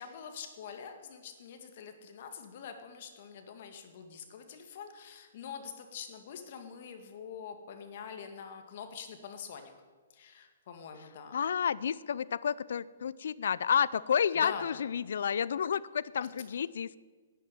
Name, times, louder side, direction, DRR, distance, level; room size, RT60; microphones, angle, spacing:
voice 1, 0.0-9.7 10.1-11.4 14.4-14.8 16.2-16.3, left 7 dB, 55° left, 6 dB, 2.0 m, -45 dB
voice 2, 11.3-17.0, left 7 dB, 70° left, 19 dB, 0.5 m, -30 dB
12.0 x 8.4 x 9.3 m, 1.4 s
hypercardioid pair, 130°, 0 cm